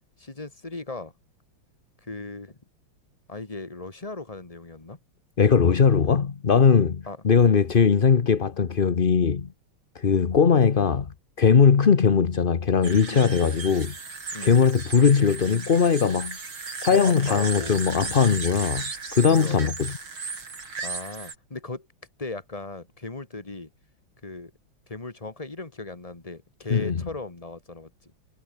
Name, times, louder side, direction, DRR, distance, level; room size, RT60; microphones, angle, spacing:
voice 1, 0.2-1.1 2.0-2.6 3.3-5.0 7.1-7.2 13.1-13.5 14.3-14.7 16.9-17.7 19.3-19.7 20.8-21.9 22.2-23.7 24.2-24.5 24.9-28.1, left 3 dB, 20° left, 2.0 m, -37 dB
voice 2, 5.4-9.5 9.9-13.9 14.4-16.4 16.8-19.9 26.7-27.0, left 6 dB, 35° left, 0.9 m, -20 dB
sound 1, 12.8-21.3, right 4 dB, 80° right, 4.8 m, -35 dB
omnidirectional pair, 2.2 m